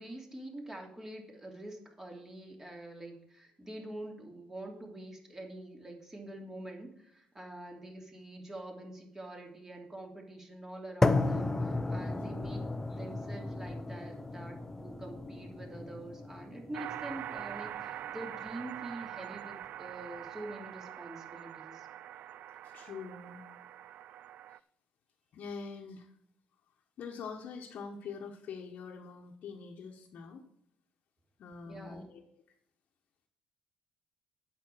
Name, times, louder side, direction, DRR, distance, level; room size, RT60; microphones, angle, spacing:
voice 1, 0.0-21.9 31.6-32.1, right 1 dB, 15° right, 1 dB, 2.9 m, -46 dB
sound 1, 11.0-19.0, left 2 dB, 15° left, 0.8 m, -34 dB
sound 2, 16.7-24.6, right 12 dB, 65° right, 0.3 m, -44 dB
voice 2, 22.6-23.4 24.5-24.6 25.3-26.1 27.0-30.5 31.4-32.2, left 5 dB, 60° left, -1 dB, 1.2 m, -44 dB
8.8 x 7.0 x 6.1 m, 0.74 s
supercardioid pair, 65°, 3 cm